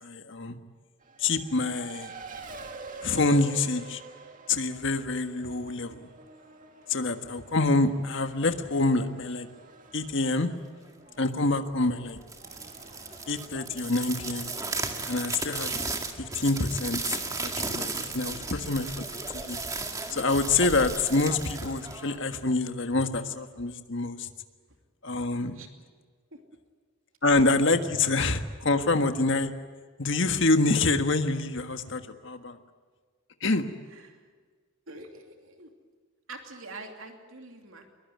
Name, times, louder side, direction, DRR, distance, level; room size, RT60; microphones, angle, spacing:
voice 1, 0.0-0.6 1.2-2.1 3.0-4.0 4.5-6.0 6.9-9.5 9.9-10.5 11.2-12.2 13.3-14.5 15.1-15.9 16.2-17.0 17.4-19.0 19.3-19.6 20.1-24.3 25.0-25.6 27.2-29.5 30.0-32.6 33.4-33.7, left 3 dB, 60° left, 7 dB, 1.6 m, -26 dB
Race car auto racing, 1.0-20.1, right 3 dB, 40° right, 2.2 m, -49 dB
sound 1, 12.2-22.5, right 3 dB, 15° right, 2.0 m, -35 dB
voice 2, 33.8-34.2 34.9-35.7 36.3-37.9, right 2 dB, 75° right, 4 dB, 2.8 m, -45 dB
22.5 x 22.0 x 9.4 m, 1.5 s
head